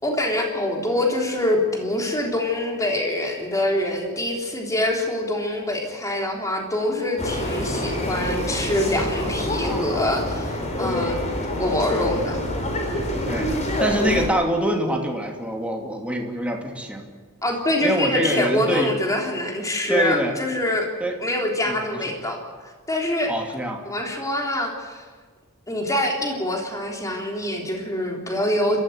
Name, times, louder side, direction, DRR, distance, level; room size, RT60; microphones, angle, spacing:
voice 1, 0.0-11.2 11.6-12.4 17.4-20.9 21.2-22.4 22.9-23.3 23.9-25.0 25.7-28.8, left 1 dB, 15° left, 1 dB, 3.6 m, -25 dB
sound 1, 7.2-14.3, left 1 dB, 35° left, 4.2 m, -26 dB
voice 2, 13.8-17.1 17.8-18.9 19.9-20.3 21.0-21.2 21.6-22.0 23.3-23.8, right 1 dB, 5° right, 1 dB, 2.8 m, -25 dB
29.0 x 14.0 x 8.1 m, 1.5 s
head